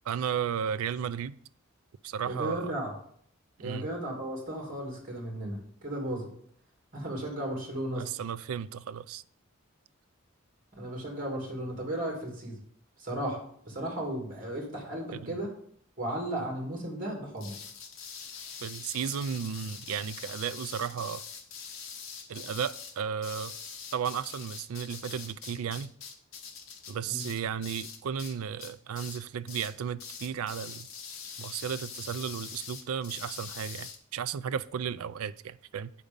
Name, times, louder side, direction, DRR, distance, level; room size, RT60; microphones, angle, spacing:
voice 1, 0.1-1.4 2.0-2.7 3.6-3.9 7.9-9.2 15.1-15.4 18.6-21.2 22.3-23.5 23.9-25.9 26.9-30.9 31.4-35.9, right 7 dB, 85° right, 0.4 m, -34 dB
voice 2, 2.2-2.9 3.6-6.3 6.9-8.1 10.7-12.6 13.0-15.5 16.0-17.6 27.1-27.3, right 1 dB, 40° right, 2.4 m, -35 dB
sound 1, 17.4-28.3 28.6-29.2 29.5-29.7 30.0-34.0, left 6 dB, 70° left, 1.2 m, -43 dB
8.3 x 5.1 x 5.2 m
head